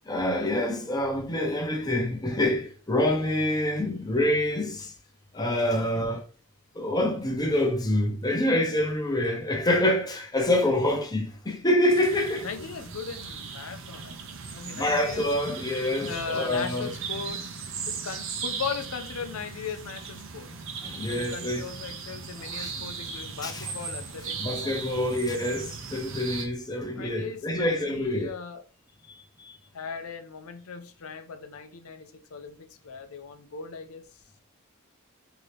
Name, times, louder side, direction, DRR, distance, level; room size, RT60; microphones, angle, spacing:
voice 1, 0.1-4.9 5.3-6.2 6.7-12.5 14.7-16.9 20.8-21.6 22.5-22.7 23.4-23.7 24.4-28.3 29.4-29.5, left 1 dB, 20° left, 0.8 m, -26 dB
sound 1, 11.9-26.5, right 5 dB, 65° right, 0.7 m, -38 dB
voice 2, 12.4-14.2 14.5-15.3 16.0-17.5 17.9-20.5 21.1-24.7 27.0-28.6 29.7-34.2, left 6 dB, 80° left, 0.6 m, -38 dB
3.8 x 2.9 x 3.3 m
head